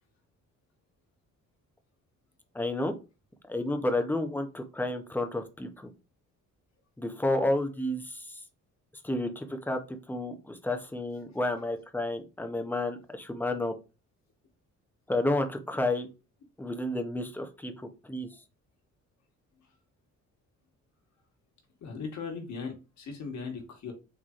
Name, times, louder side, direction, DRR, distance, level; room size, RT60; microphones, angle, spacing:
voice 1, 2.5-2.9 3.5-5.9 7.0-8.4 9.0-13.7 15.1-16.1 16.6-18.3, left 1 dB, 5° left, 0.6 m, -31 dB
voice 2, 21.8-23.9, left 5 dB, 65° left, 1.3 m, -38 dB
3.9 x 3.0 x 2.4 m
cardioid pair, 90°, 30 cm